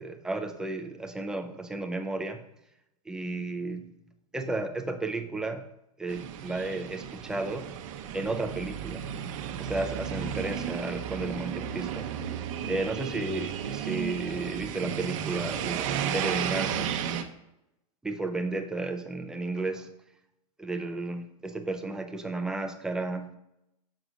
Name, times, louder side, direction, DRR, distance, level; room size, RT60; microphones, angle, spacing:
voice 1, 0.0-2.4 3.1-3.9 4.3-5.7 6.0-7.7 8.1-9.1 9.6-12.1 12.7-16.9 18.0-19.9 20.6-23.4, right 2 dB, 5° right, 6 dB, 0.3 m, -33 dB
sound 1, 6.1-17.2, right 9 dB, 60° right, 0.7 m, -33 dB
6.2 x 3.9 x 4.9 m, 0.86 s
supercardioid pair, 150°, 19 cm